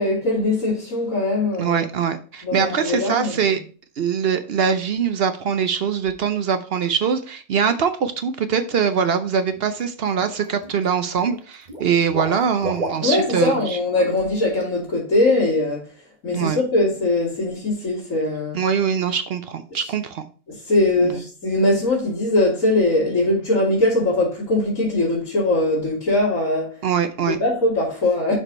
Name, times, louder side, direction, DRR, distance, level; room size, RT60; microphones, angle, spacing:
voice 1, 0.0-1.8 2.4-3.6 13.0-15.9 16.2-18.6 19.7-19.8 20.5-26.8 27.3-28.3, left 2 dB, 75° left, 3.2 m, -21 dB
voice 2, 1.6-3.6 4.0-13.8 16.3-16.6 18.5-20.3 21.0-21.2 26.8-27.4, right 7 dB, 60° right, 0.7 m, -22 dB
Water / Liquid, 9.5-9.8 10.2-10.9 11.2-13.7 14.0-14.2 14.5-14.6, right 2 dB, 30° right, 1.5 m, -31 dB
6.3 x 5.1 x 4.3 m
omnidirectional pair, 1.4 m